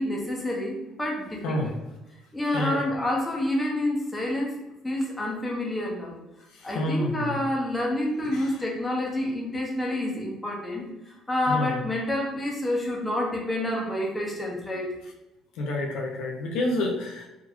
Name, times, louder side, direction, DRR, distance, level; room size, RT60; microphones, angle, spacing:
voice 1, 0.0-1.6 2.3-6.1 6.6-15.0, left 1 dB, 15° left, -2 dB, 1.0 m, -28 dB
voice 2, 1.4-1.7 2.5-2.8 6.5-7.4 8.2-8.6 11.5-11.8 15.5-17.3, left 1 dB, 80° left, 0 dB, 0.6 m, -29 dB
3.6 x 2.9 x 2.3 m, 0.97 s
cardioid pair, 95°, 0 cm